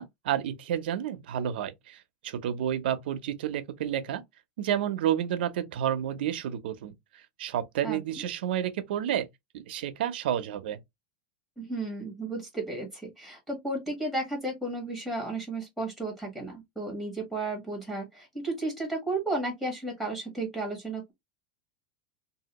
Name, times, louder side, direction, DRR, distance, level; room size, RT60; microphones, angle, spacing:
voice 1, 0.0-4.2 4.6-6.9 7.4-9.3 9.5-10.8, right 10 dB, 85° right, 0.6 m, -30 dB
voice 2, 7.8-8.3 11.6-21.1, right 2 dB, 5° left, 1.4 m, -33 dB
2.7 x 2.7 x 2.9 m
supercardioid pair, 150°, 5 cm